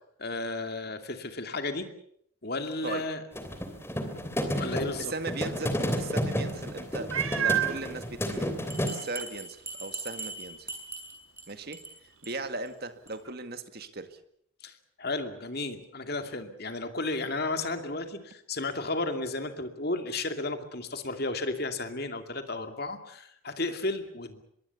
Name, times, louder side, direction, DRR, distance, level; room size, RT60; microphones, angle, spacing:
voice 1, 0.2-1.9 2.4-3.2 4.6-5.1 14.6-24.4, left 2 dB, 50° left, 7 dB, 2.5 m, -33 dB
sound 1, 3.4-8.9, equal, 10° left, 3.1 m, -31 dB
voice 2, 5.0-8.5 8.8-10.7 11.5-14.2, right 3 dB, 50° right, 9 dB, 1.9 m, -38 dB
Meow, 7.1-7.8 8.6-8.7 9.2-9.3 13.2-13.3, right 10 dB, 85° right, 1.6 m, -27 dB
Bell, 8.7-11.4 11.7-11.9 12.2-12.3 12.7-12.8 13.1-13.2, right 3 dB, 10° right, 6.4 m, -39 dB
25.0 x 22.0 x 7.1 m, 0.70 s
head